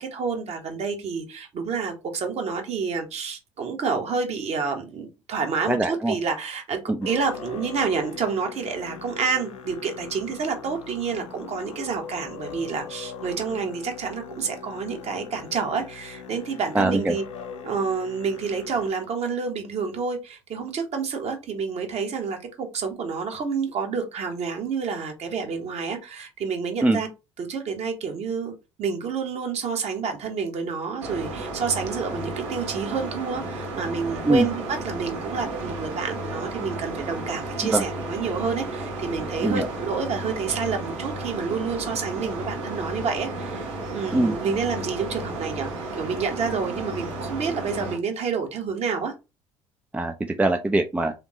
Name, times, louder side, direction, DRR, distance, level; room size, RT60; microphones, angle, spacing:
voice 1, 0.0-6.8 7.0-17.2 17.6-27.1 27.4-28.5 28.8-45.7 46.0-49.1, right 5 dB, 40° right, 1.3 m, -29 dB
voice 2, 5.7-6.2 6.9-7.1 16.7-17.2 26.8-27.0 34.2-34.5 37.6-37.8 39.4-39.7 44.1-44.3 49.9-51.1, right 2 dB, 10° right, 0.5 m, -22 dB
Musical instrument, 7.0-18.9, left 6 dB, 70° left, 0.7 m, -40 dB
sound 1, 31.0-48.0, right 2 dB, 70° right, 1.5 m, -33 dB
3.6 x 3.5 x 3.0 m
figure-of-eight pair, 60°, 16 cm